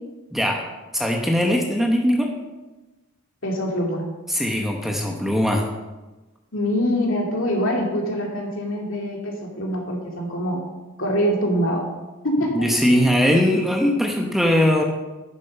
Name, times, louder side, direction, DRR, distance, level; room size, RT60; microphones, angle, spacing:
voice 1, 0.3-0.6 0.9-2.3 4.3-5.7 12.5-14.8, equal, ahead, 1 dB, 0.9 m, -20 dB
voice 2, 3.4-4.1 6.5-10.6 11.0-11.8 12.2-12.7, equal, 65° left, -1 dB, 2.5 m, -24 dB
10.5 x 7.4 x 5.4 m, 1.1 s
head